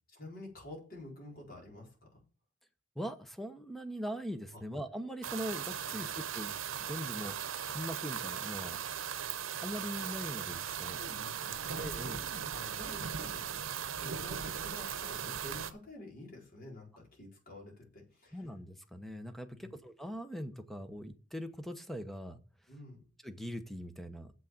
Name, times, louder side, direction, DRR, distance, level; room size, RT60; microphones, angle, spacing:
voice 1, 0.1-2.2 4.5-4.6 5.9-6.0 10.9-13.5 13.9-18.5 19.5-19.7 22.7-23.0, left 1 dB, 45° left, -1 dB, 4.5 m, -50 dB
voice 2, 2.9-7.4 7.7-8.8 9.6-11.0 11.8-12.2 18.3-22.4 23.2-24.3, equal, ahead, 9 dB, 0.9 m, -41 dB
sound 1, 5.2-15.7, right 8 dB, 85° right, 0.8 m, -38 dB
7.5 x 6.2 x 7.1 m, 0.38 s
head